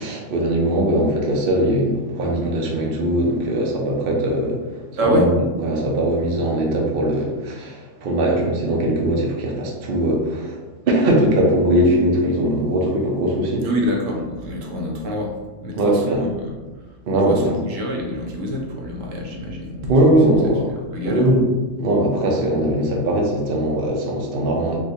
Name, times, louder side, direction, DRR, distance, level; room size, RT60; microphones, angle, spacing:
voice 1, 0.0-4.6 5.1-5.3 5.6-10.6 10.9-13.6 15.7-16.2 17.1-17.4 19.9-20.7 21.0-21.4 21.8-24.8, right 1 dB, 55° right, -1 dB, 0.7 m, -20 dB
voice 2, 5.0-5.3 13.6-15.4 15.6-16.5 17.3-19.9 20.3-20.4 20.7-21.4, equal, 75° right, 0 dB, 1.0 m, -26 dB
3.7 x 2.5 x 2.7 m, 1.3 s
omnidirectional pair, 1.3 m